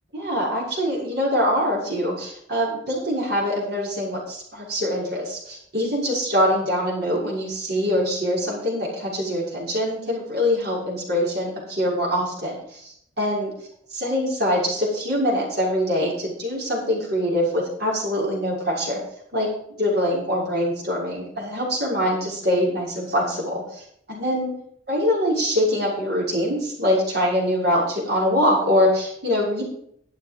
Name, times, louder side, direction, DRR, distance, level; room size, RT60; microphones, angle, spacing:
voice 1, 0.1-13.5 13.9-19.0 19.3-24.5 24.9-29.6, equal, 55° right, -4 dB, 6.3 m, -24 dB
12.5 x 8.4 x 5.3 m, 0.68 s
head